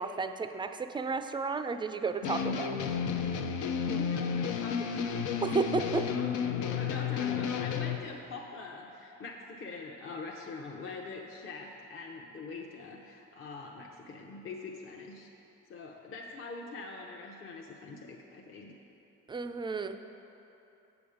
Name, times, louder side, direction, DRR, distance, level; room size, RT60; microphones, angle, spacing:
voice 1, 0.0-2.8 5.4-6.1 19.3-20.0, right 4 dB, 15° right, 9 dB, 0.4 m, -32 dB
sound 1, 2.2-8.0, left 7 dB, 85° left, 0.6 m, -32 dB
voice 2, 3.9-5.2 6.0-6.3 6.7-15.3 15.7-18.8, left 3 dB, 45° left, 0 dB, 0.7 m, -43 dB
7.8 x 7.0 x 5.0 m, 2.9 s
cardioid pair, 90°, 30 cm